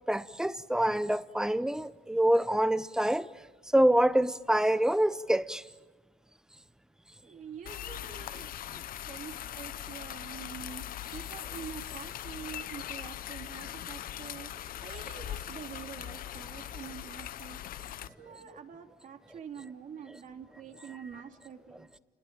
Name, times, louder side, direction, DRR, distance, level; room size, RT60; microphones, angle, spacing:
voice 1, 0.1-3.3 3.7-5.6, right 1 dB, 5° right, 0.8 m, -26 dB
voice 2, 7.2-10.8 11.1-17.6 18.2-22.0, right 7 dB, 50° right, 2.9 m, -46 dB
sound 1, 7.7-18.1, left 11 dB, 55° left, 0.8 m, -41 dB
29.5 x 21.0 x 8.9 m
cardioid pair, 110°, 17 cm